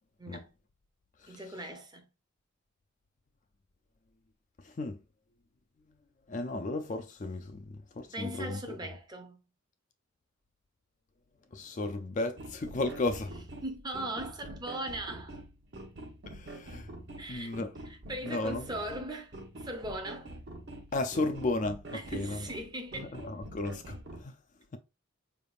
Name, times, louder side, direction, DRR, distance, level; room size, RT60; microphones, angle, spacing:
voice 1, 1.3-2.1 8.1-9.4 13.6-15.4 17.2-17.5 17.8-20.3 21.9-23.1, right 1 dB, 20° right, 0.6 m, -39 dB
voice 2, 4.6-5.0 6.3-8.8 11.5-13.3 16.3-16.9 17.3-17.7 18.2-18.7 20.9-22.5 22.9-24.3, left 2 dB, 35° left, 0.4 m, -34 dB
sound 1, 12.4-24.2, right 1 dB, 50° right, 0.9 m, -46 dB
4.7 x 3.4 x 2.4 m
head